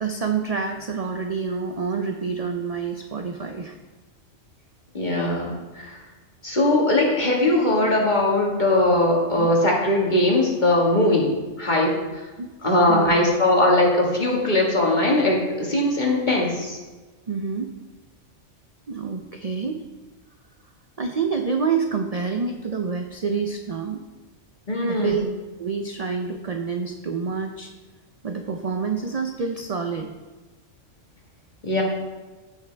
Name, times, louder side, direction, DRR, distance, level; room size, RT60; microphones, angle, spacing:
voice 1, 0.0-3.8 9.4-9.5 12.4-12.5 12.9-13.1 17.3-17.7 18.9-19.9 21.0-24.0 24.9-25.3 25.6-27.7 28.2-30.1, right 5 dB, 45° right, 4 dB, 0.5 m, -27 dB
voice 2, 4.9-6.0 6.4-11.3 11.6-12.2 12.6-16.8 24.7-25.2 31.6-31.8, left 1 dB, 35° left, -2 dB, 1.9 m, -20 dB
15.0 x 5.7 x 3.4 m, 1.3 s
omnidirectional pair, 1.3 m